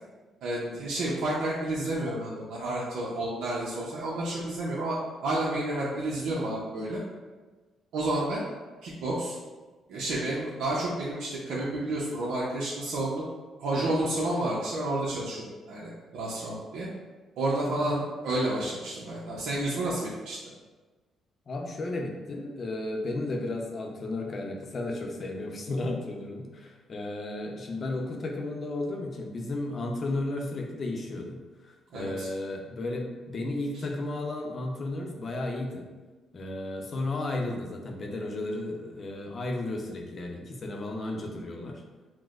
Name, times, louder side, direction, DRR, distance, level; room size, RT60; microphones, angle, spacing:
voice 1, 0.4-7.0 7.9-8.4 8.8-9.4 9.9-13.2 13.6-16.9 17.4-20.4 31.9-32.3, right 1 dB, 80° right, -6 dB, 0.7 m, -30 dB
voice 2, 21.5-35.9 36.3-41.8, left 2 dB, 45° left, 1 dB, 0.7 m, -34 dB
6.0 x 2.1 x 2.5 m, 1.3 s
cardioid pair, 90°, 0 cm